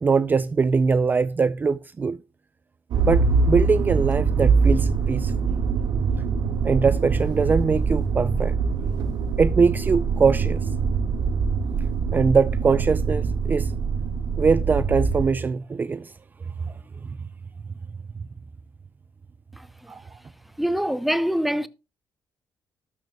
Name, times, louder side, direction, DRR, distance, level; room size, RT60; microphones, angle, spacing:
voice 1, 0.0-2.2 3.0-5.3 6.6-8.5 9.4-10.7 12.1-13.7 14.4-16.1 16.7-16.8 19.9-20.0, right 5 dB, 25° right, 0.4 m, -22 dB
Motor vehicle (road), 2.9-15.3, right 5 dB, 75° right, 1.8 m, -23 dB
voice 2, 19.6-19.9 20.6-21.7, equal, ahead, 0.8 m, -25 dB
13.0 x 12.0 x 2.3 m
cardioid pair, 110°, 7 cm